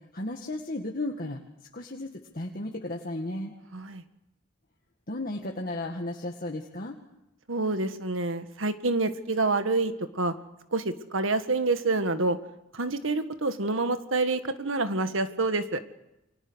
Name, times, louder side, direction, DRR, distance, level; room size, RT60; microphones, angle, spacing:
voice 1, 0.1-1.4 1.7-2.1 2.3-3.5 5.1-7.0, left 1 dB, 45° left, 1 dB, 2.0 m, -34 dB
voice 2, 3.7-4.0 7.5-10.3 10.7-12.4 12.7-15.8, right 3 dB, 80° right, 9 dB, 1.8 m, -27 dB
29.5 x 23.5 x 6.4 m, 0.92 s
head